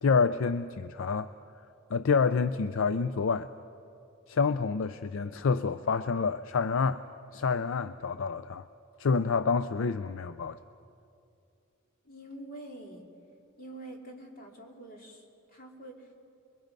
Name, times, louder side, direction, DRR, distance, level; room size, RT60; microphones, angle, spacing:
voice 1, 0.0-1.3 1.9-3.5 4.3-7.0 7.3-8.6 9.0-10.6, left 5 dB, 65° left, 12 dB, 0.5 m, -28 dB
voice 2, 12.0-13.0 13.6-16.2, right 1 dB, 45° left, 0 dB, 2.8 m, -46 dB
28.0 x 22.5 x 5.3 m, 2.6 s
head